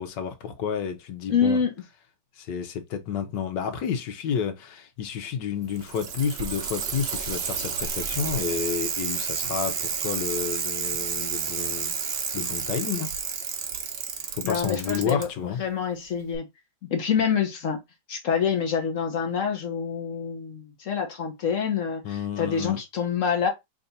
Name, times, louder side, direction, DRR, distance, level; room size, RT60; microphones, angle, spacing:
voice 1, 0.0-1.6 2.4-11.9 12.3-13.1 14.3-15.6 22.0-22.8, left 7 dB, 75° left, 1.5 m, -30 dB
voice 2, 1.3-1.7 14.4-15.3 15.6-16.5 16.9-17.8 18.1-23.5, left 7 dB, 55° left, 1.0 m, -26 dB
Bicycle, 5.6-15.2 16.3-16.4, right 6 dB, 55° right, 0.7 m, -30 dB
3.5 x 2.6 x 4.0 m
omnidirectional pair, 2.0 m